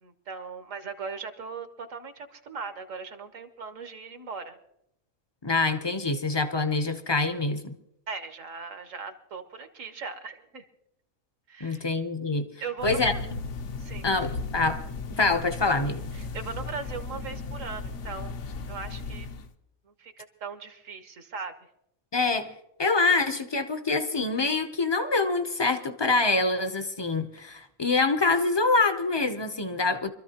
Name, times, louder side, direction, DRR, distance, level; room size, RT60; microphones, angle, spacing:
voice 1, 0.0-4.6 8.1-10.6 11.5-11.9 12.6-13.2 13.8-14.1 16.1-18.4 18.7-19.3 19.8-21.5, right 5 dB, 70° right, 7 dB, 1.5 m, -39 dB
voice 2, 5.4-7.7 11.6-12.5 12.8-13.1 14.0-14.8 15.1-16.1 22.1-22.5 22.8-30.1, left 3 dB, 25° left, 8 dB, 0.6 m, -25 dB
sound 1, 12.8-19.5, left 3 dB, 65° left, 1.0 m, -36 dB
25.5 x 13.5 x 2.9 m, 0.80 s
omnidirectional pair, 1.4 m